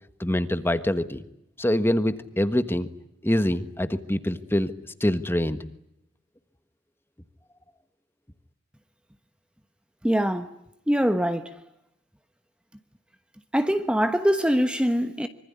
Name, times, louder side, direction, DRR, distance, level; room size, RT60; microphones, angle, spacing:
voice 1, 0.2-1.2 1.6-2.9 3.2-4.7 5.0-5.6, left 1 dB, 10° left, 1.4 m, -24 dB
voice 2, 10.0-10.5 10.9-11.6 13.5-15.3, equal, 5° right, 1.1 m, -23 dB
25.5 x 24.0 x 9.7 m
head